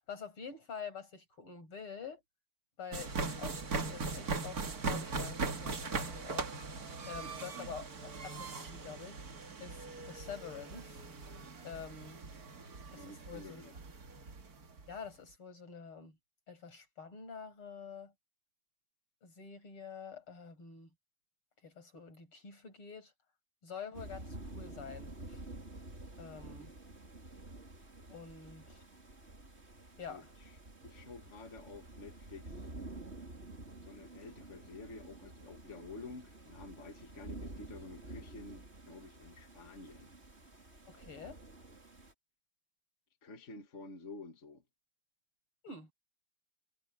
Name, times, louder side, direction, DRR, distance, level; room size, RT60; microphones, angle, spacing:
voice 1, 0.0-2.2 2.8-9.2 9.6-11.0 11.6-12.2 12.9-13.6 14.9-16.2 16.5-18.1 19.2-20.9 21.6-23.1 23.6-25.4 26.2-26.7 28.1-28.8 30.0-30.3 40.9-41.4 45.6-45.9, left 6 dB, 85° left, 7.1 m, -47 dB
sound 1, 2.9-14.9, right 4 dB, 45° right, 2.3 m, -40 dB
voice 2, 12.9-13.7 26.3-26.7 30.1-30.5 30.8-32.7 33.8-40.1 43.2-44.6, left 3 dB, 35° left, 2.3 m, -50 dB
sound 2, 23.9-42.1, right 2 dB, 30° right, 4.2 m, -50 dB
omnidirectional pair, 2.3 m